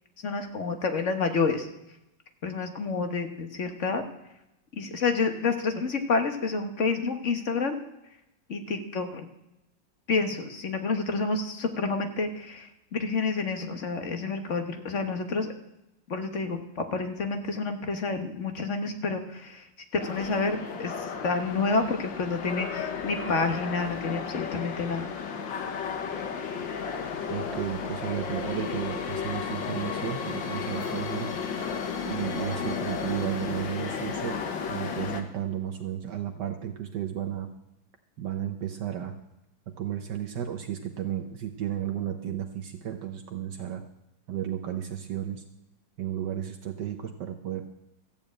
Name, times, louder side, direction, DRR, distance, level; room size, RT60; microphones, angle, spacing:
voice 1, 0.2-1.7 2.4-4.0 4.8-7.8 8.5-9.2 10.1-15.5 16.1-19.7 19.9-20.9 21.2-25.1, left 4 dB, 45° left, 6 dB, 1.5 m, -29 dB
sound 1, 20.0-35.2, left 6 dB, 75° left, 1.9 m, -33 dB
voice 2, 27.3-31.3 32.0-34.4 34.7-37.5 38.2-39.2 39.7-43.8 44.3-45.4 46.0-47.7, right 10 dB, 70° right, 5 dB, 1.4 m, -33 dB
14.0 x 7.2 x 8.7 m, 0.89 s
omnidirectional pair, 2.0 m